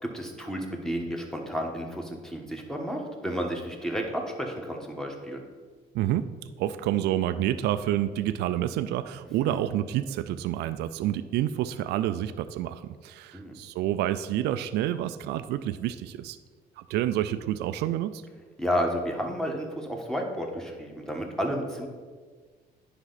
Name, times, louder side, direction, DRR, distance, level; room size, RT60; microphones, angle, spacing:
voice 1, 0.0-5.4 9.4-9.6 13.3-13.6 18.6-21.9, equal, 5° left, 1 dB, 1.3 m, -31 dB
voice 2, 5.9-6.3 6.6-16.4 16.8-18.2, right 12 dB, 80° right, 12 dB, 0.4 m, -28 dB
9.9 x 5.5 x 4.0 m, 1.5 s
cardioid pair, 110°, 17 cm